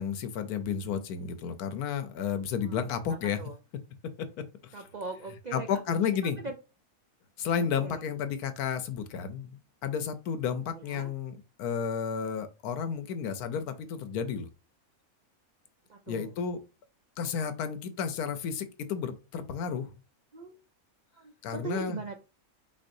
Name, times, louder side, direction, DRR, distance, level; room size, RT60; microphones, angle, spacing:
voice 1, 0.0-3.4 4.2-4.3 4.6-4.8 5.5-6.4 7.4-14.5 16.1-16.6 17.2-19.9 21.4-22.0, left 7 dB, 85° left, 1.2 m, -32 dB
voice 2, 2.7-3.5 4.7-5.7 6.0-6.1 6.4-6.5 7.8-8.0 10.7-11.1 15.9-16.3 20.3-20.5 21.2-22.1, right 4 dB, 80° right, 0.4 m, -40 dB
5.2 x 3.9 x 2.6 m
omnidirectional pair, 1.6 m